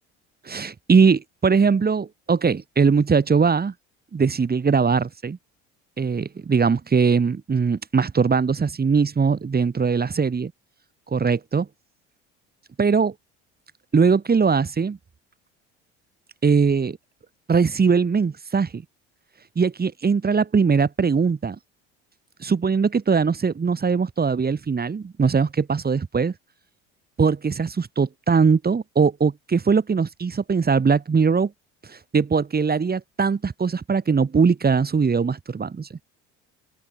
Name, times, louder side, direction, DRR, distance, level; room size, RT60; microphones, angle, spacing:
voice 1, 0.4-3.7 4.1-5.4 6.0-10.5 11.1-11.7 12.8-13.1 13.9-15.0 16.4-17.0 17.5-18.8 19.5-21.6 22.4-26.3 27.2-31.5 31.9-35.9, right 5 dB, 30° right, 4.9 m, -21 dB
open air
hypercardioid pair, 70°, 33 cm